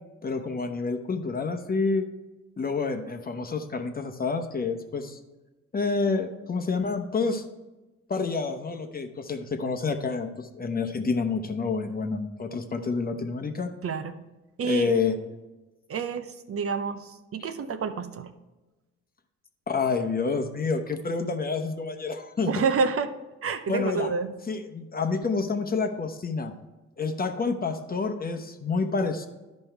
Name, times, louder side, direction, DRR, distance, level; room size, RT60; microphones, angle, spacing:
voice 1, 0.2-2.1 2.6-5.2 5.7-7.4 8.1-13.7 14.6-15.2 19.7-22.5 23.7-24.1 24.5-26.5 27.0-29.3, left 4 dB, 30° left, 6 dB, 0.9 m, -28 dB
voice 2, 13.8-14.1 14.6-14.9 15.9-18.3 22.5-23.1 23.4-24.3, right 5 dB, 50° right, 9 dB, 0.7 m, -28 dB
11.5 x 5.3 x 4.5 m, 1.1 s
cardioid pair, 90°, 30 cm